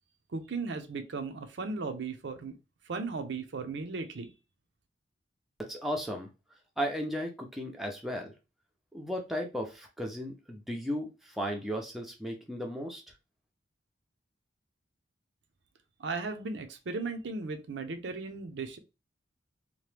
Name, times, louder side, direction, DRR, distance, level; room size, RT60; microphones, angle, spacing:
voice 1, 0.3-2.5 2.9-4.3 16.0-18.8, right 4 dB, 65° right, 0.5 m, -36 dB
voice 2, 5.6-6.3 6.8-8.3 8.9-13.0, equal, ahead, 0.5 m, -35 dB
2.9 x 2.1 x 3.2 m
head